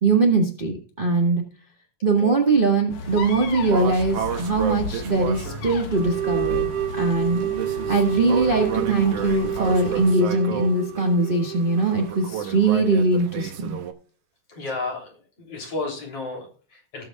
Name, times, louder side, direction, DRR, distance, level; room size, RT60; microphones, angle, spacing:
voice 1, 0.0-1.4 2.0-6.7 6.9-13.8, right 3 dB, 25° right, 1 dB, 1.2 m, -21 dB
sound 1, 2.9-10.2, left 4 dB, 85° left, 3.1 m, -35 dB
sound 2, 3.1-13.9, right 8 dB, 65° right, 1.9 m, -33 dB
sound 3, 5.9-12.7, right 10 dB, 90° right, 2.5 m, -29 dB
voice 2, 14.5-17.1, left 3 dB, 50° left, 0 dB, 4.3 m, -33 dB
18.5 x 7.5 x 2.4 m, 0.40 s
omnidirectional pair, 3.5 m